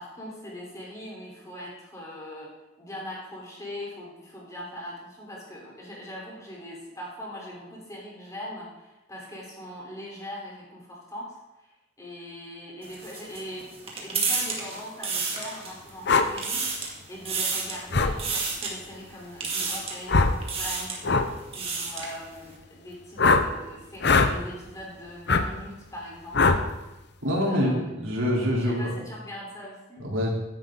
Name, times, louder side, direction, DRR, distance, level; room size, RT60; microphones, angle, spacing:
voice 1, 0.0-2.5 2.8-11.7 12.0-13.7 14.0-26.6 27.4-27.9 28.6-30.1, left 1 dB, 15° left, -3 dB, 3.7 m, -41 dB
sound 1, 12.8-15.9 16.2-16.9 17.2-17.8 18.2-18.7 19.4-20.0 20.4-21.0 21.4-22.1, right 4 dB, 30° right, 2.2 m, -30 dB
sound 2, 16.1-16.3 17.9-18.1 20.1-20.4 21.0-21.3 23.2-23.5 24.0-24.3 25.3-25.4 26.3-26.6, left 4 dB, 55° left, 0.9 m, -20 dB
voice 2, 27.2-28.9 30.0-30.3, equal, 85° right, -2 dB, 3.5 m, -25 dB
15.5 x 10.5 x 3.9 m, 1.0 s
head